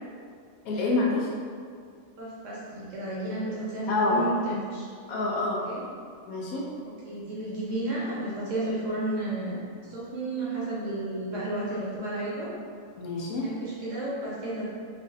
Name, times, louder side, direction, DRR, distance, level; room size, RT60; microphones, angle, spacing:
voice 1, 0.6-1.3 3.9-4.2 5.1-5.6 6.3-6.6 13.0-13.5, left 2 dB, 85° left, -4 dB, 1.1 m, -27 dB
voice 2, 2.2-4.9 5.6-5.8 7.1-12.5 13.4-14.6, right 2 dB, 65° right, -7 dB, 1.0 m, -32 dB
3.4 x 3.0 x 2.6 m, 2.2 s
omnidirectional pair, 1.5 m